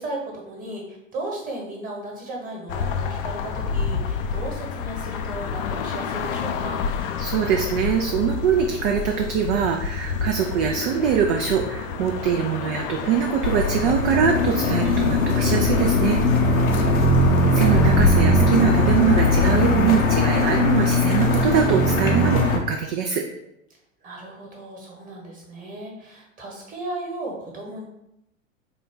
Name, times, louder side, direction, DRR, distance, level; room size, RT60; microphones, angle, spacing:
voice 1, 0.0-6.9 24.0-27.8, right 1 dB, 20° right, -1 dB, 1.3 m, -35 dB
sound 1, 2.7-13.6, left 6 dB, 45° left, 0.4 m, -29 dB
voice 2, 7.2-16.2 17.5-23.2, right 7 dB, 45° right, 2 dB, 0.4 m, -23 dB
sound 2, 13.4-22.6, left 2 dB, 80° left, 0.8 m, -19 dB
4.0 x 2.3 x 3.7 m, 0.83 s
figure-of-eight pair, 95°, 40 cm